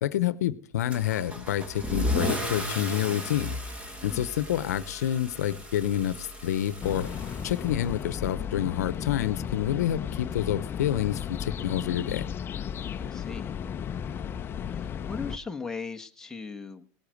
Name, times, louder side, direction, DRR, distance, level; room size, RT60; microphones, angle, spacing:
voice 1, 0.0-3.6 4.0-7.1 7.4-12.2, left 11 dB, 85° left, 0.9 m, -28 dB
Car / Engine starting / Accelerating revving vroom, 0.9-8.2, left 1 dB, 15° right, 2.4 m, -35 dB
sound 1, 6.8-15.4, left 8 dB, 25° left, 0.8 m, -34 dB
voice 2, 13.0-13.5 14.7-16.9, left 4 dB, 5° left, 1.4 m, -38 dB
18.0 x 8.5 x 6.4 m
supercardioid pair, 125°, 8 cm